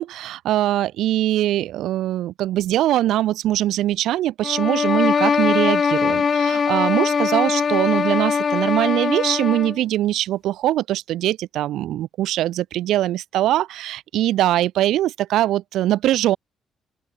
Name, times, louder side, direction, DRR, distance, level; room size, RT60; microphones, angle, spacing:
voice 1, 0.0-16.4, right 13 dB, 85° right, 1.4 m, -22 dB
sound 1, 4.4-9.8, left 6 dB, 45° left, 0.7 m, -21 dB
open air
cardioid pair, 90°, 0 cm